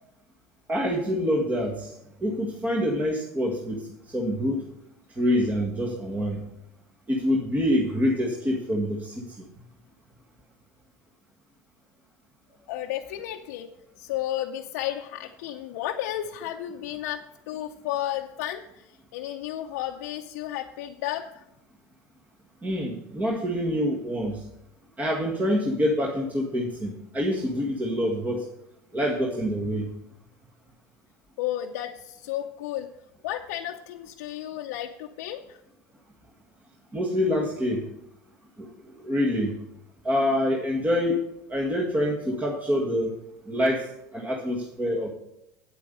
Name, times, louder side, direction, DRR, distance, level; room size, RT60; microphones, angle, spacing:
voice 1, 0.7-1.9 2.2-3.9 4.1-4.6 5.2-6.4 7.1-9.5 22.6-24.4 25.0-28.5 28.9-29.9 36.9-37.9 38.6-38.7 39.0-39.6 40.0-41.2 41.5-43.2 43.5-45.1, equal, 20° right, -1 dB, 1.7 m, -26 dB
voice 2, 12.7-13.7 14.0-21.4 31.4-32.9 33.2-35.6, left 12 dB, 75° left, 2 dB, 0.7 m, -33 dB
9.1 x 8.4 x 5.4 m, 0.82 s
hypercardioid pair, 90°, 9 cm